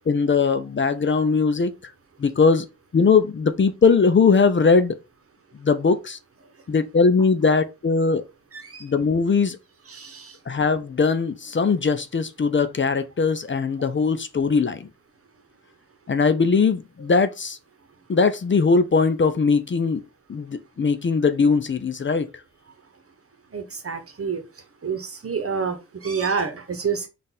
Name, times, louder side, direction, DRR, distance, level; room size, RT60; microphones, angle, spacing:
voice 1, 0.0-1.7 2.2-2.6 2.9-5.0 5.6-6.2 6.7-8.2 8.8-9.6 10.5-14.9 16.1-17.6 18.1-20.0 20.3-22.3, left 4 dB, 40° left, 0.5 m, -20 dB
voice 2, 9.9-10.4 23.5-24.4 24.8-27.1, right 6 dB, 50° right, 1.0 m, -28 dB
3.8 x 2.5 x 4.1 m
wide cardioid pair, 70°, 30 cm